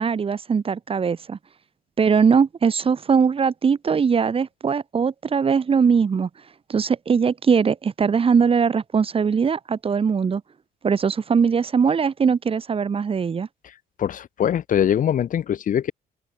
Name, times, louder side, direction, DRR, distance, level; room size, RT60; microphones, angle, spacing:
voice 1, 0.0-1.4 2.0-6.3 6.7-10.4 10.8-13.5, right 6 dB, 35° right, 3.7 m, -20 dB
voice 2, 14.0-15.9, left 9 dB, 50° left, 3.6 m, -22 dB
open air
cardioid pair, 110°, 17 cm